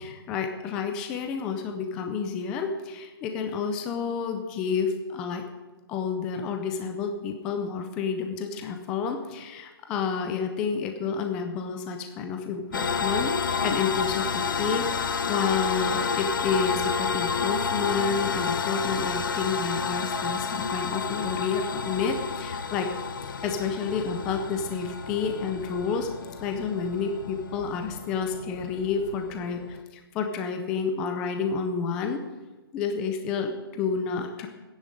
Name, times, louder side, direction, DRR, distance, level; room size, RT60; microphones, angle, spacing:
voice 1, 0.0-5.4 5.9-22.9 23.4-26.1 26.4-32.2 32.7-34.5, left 5 dB, 5° left, 5 dB, 0.4 m, -30 dB
sound 1, 12.7-29.8, left 5 dB, 55° left, 1.0 m, -30 dB
14.5 x 10.5 x 7.6 m, 1.2 s
hypercardioid pair, 175°, 13 cm